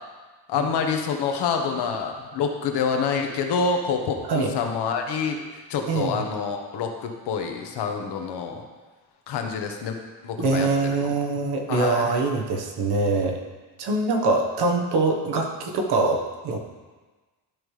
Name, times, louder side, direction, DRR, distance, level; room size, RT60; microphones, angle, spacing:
voice 1, 0.5-8.6 9.3-10.0 10.2-10.7 11.0-11.1 11.7-12.1, left 5 dB, 65° left, 4 dB, 1.1 m, -27 dB
voice 2, 5.9-6.2 10.4-13.4 13.8-16.6, right 3 dB, 60° right, 3 dB, 1.2 m, -24 dB
12.0 x 5.3 x 3.2 m, 1.3 s
cardioid pair, 150°, 44 cm